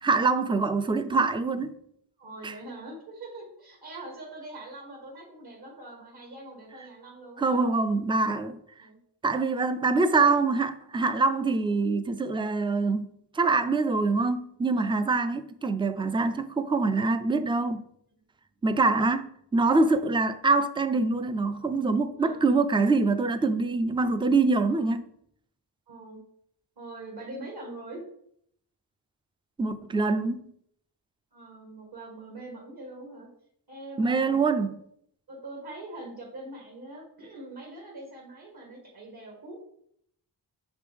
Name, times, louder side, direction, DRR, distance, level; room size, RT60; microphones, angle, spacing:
voice 1, 0.0-1.8 2.4-2.5 7.4-8.6 9.2-17.8 18.6-25.0 29.6-30.4 34.0-34.8, right 3 dB, 15° right, 0.3 m, -25 dB
voice 2, 2.2-7.7 8.8-9.0 18.6-18.8 22.2-22.4 24.6-24.9 25.9-26.2 26.8-28.0 31.3-33.3 33.7-34.7 35.3-39.7, right 2 dB, 60° right, 1.6 m, -43 dB
6.1 x 5.0 x 3.4 m
wide cardioid pair, 105°, 43 cm